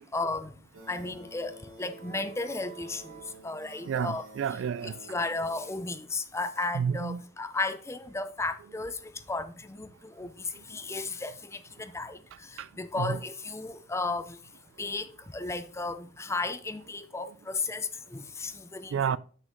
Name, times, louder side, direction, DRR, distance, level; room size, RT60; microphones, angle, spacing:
voice 1, 0.1-0.5 0.9-1.5 1.8-4.3 5.1-9.0 9.3-12.2 12.5-14.4 14.8-18.9, left 3 dB, 15° left, 0.5 m, -34 dB
sound 1, 0.7-5.8, right 2 dB, 90° right, 2.9 m, -49 dB
voice 2, 3.9-4.9 6.7-7.2 13.0-13.2 18.9-19.2, right 7 dB, 70° right, 0.3 m, -29 dB
7.6 x 6.4 x 3.7 m
head